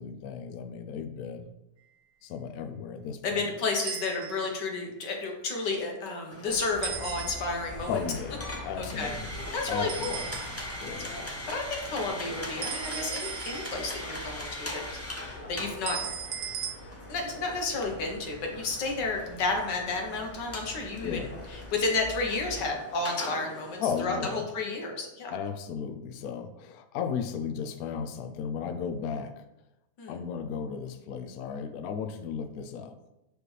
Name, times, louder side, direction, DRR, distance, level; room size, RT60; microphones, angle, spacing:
voice 1, 0.0-1.5 2.2-3.5 7.9-9.3 9.7-10.4 10.8-11.2 21.0-21.3 23.8-24.5 25.3-29.3 30.1-32.9, left 6 dB, 70° left, 8 dB, 0.9 m, -35 dB
voice 2, 3.2-7.9 8.8-9.1 9.5-10.2 11.1-16.0 17.1-25.3 30.0-30.2, left 3 dB, 85° left, 2 dB, 1.7 m, -32 dB
sound 1, 3.8-4.6 6.8-7.7 9.9-10.8 12.6-14.0 15.9-16.7, right 8 dB, 65° right, 0.9 m, -37 dB
sound 2, 6.3-24.0, left 1 dB, 15° left, 0.5 m, -41 dB
sound 3, 6.5-22.7, left 1 dB, 55° left, 1.9 m, -46 dB
6.2 x 5.0 x 3.2 m, 0.93 s
omnidirectional pair, 1.8 m